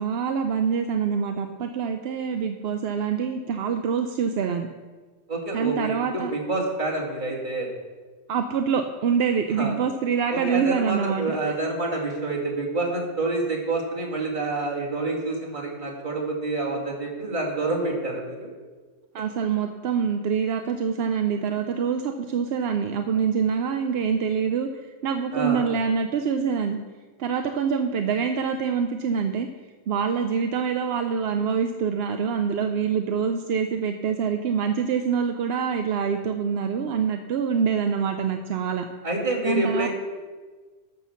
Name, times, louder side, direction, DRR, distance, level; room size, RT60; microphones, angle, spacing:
voice 1, 0.0-4.7 5.5-6.3 8.3-11.5 19.1-26.8 27.2-29.5 29.9-38.9 39.4-39.9, right 6 dB, 60° right, 6 dB, 0.7 m, -25 dB
voice 2, 5.3-7.7 9.6-9.7 10.3-18.5 25.3-25.6 39.0-39.9, right 2 dB, 35° right, -4 dB, 2.6 m, -28 dB
12.0 x 6.2 x 7.0 m, 1.4 s
omnidirectional pair, 1.4 m